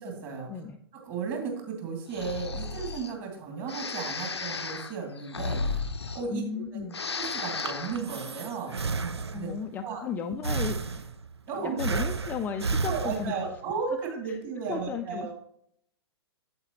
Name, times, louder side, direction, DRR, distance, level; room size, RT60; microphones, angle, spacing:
voice 1, 0.0-0.5 0.9-5.8 6.1-6.4 7.2-8.7 9.3-9.5 9.8-10.0 11.5-11.8 12.8-15.3, right 5 dB, 35° right, 2 dB, 2.4 m, -34 dB
Breathing, 2.1-3.1 3.7-6.6 6.9-8.0, left 4 dB, 80° left, 0.6 m, -34 dB
voice 2, 6.3-7.0 9.3-11.1 11.5-13.4 14.3-14.4 14.7-15.3, left 6 dB, 15° left, 4 dB, 0.3 m, -35 dB
Breathing 2, 7.4-9.7 10.4-11.4 11.8-13.6, right 4 dB, 80° right, 0.5 m, -32 dB
8.5 x 7.9 x 3.0 m, 0.71 s
figure-of-eight pair, 110°, 14 cm